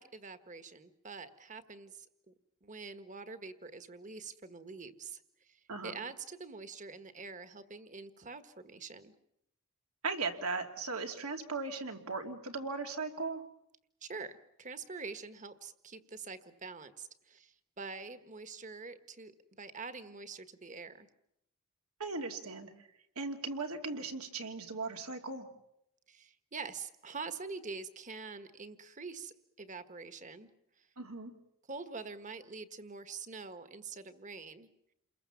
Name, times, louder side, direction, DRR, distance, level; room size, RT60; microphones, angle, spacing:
voice 1, 0.0-2.3 2.6-5.2 5.5-9.1 14.0-19.3 19.6-21.1 26.1-30.5 31.7-34.7, right 4 dB, 35° right, 11 dB, 1.5 m, -45 dB
voice 2, 10.0-13.4 22.0-22.7 23.2-25.5 31.0-31.3, right 3 dB, 80° right, 4 dB, 2.8 m, -38 dB
29.0 x 22.0 x 7.2 m, 0.76 s
head